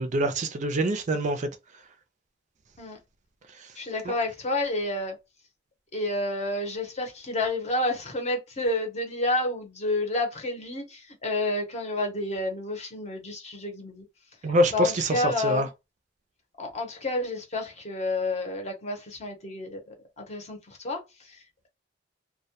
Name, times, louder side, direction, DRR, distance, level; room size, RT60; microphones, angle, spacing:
voice 1, 0.0-1.5 4.1-4.2 14.4-15.7, right 1 dB, 40° right, 0.4 m, -25 dB
voice 2, 3.7-5.2 5.9-14.0 14.7-15.7 16.6-21.7, left 2 dB, 35° left, 0.8 m, -30 dB
2.2 x 2.1 x 2.8 m
head